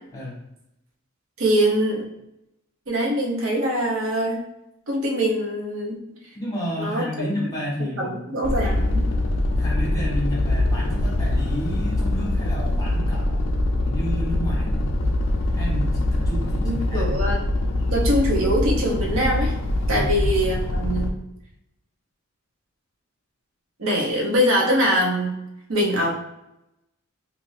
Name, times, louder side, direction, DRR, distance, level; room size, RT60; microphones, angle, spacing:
voice 1, 1.4-2.1 2.9-4.4 4.9-6.0 6.8-7.1 8.0-9.0 16.6-17.4 17.9-19.5 19.9-21.1 23.8-25.4 25.7-26.1, equal, 70° right, -1 dB, 0.7 m, -23 dB
voice 2, 6.3-8.3 9.6-13.5 13.8-15.0 15.5-17.1 19.9-20.3, equal, 15° left, -5 dB, 0.9 m, -31 dB
sound 1, 8.4-21.1, left 1 dB, 60° left, 0.3 m, -23 dB
2.5 x 2.4 x 3.2 m, 0.88 s
head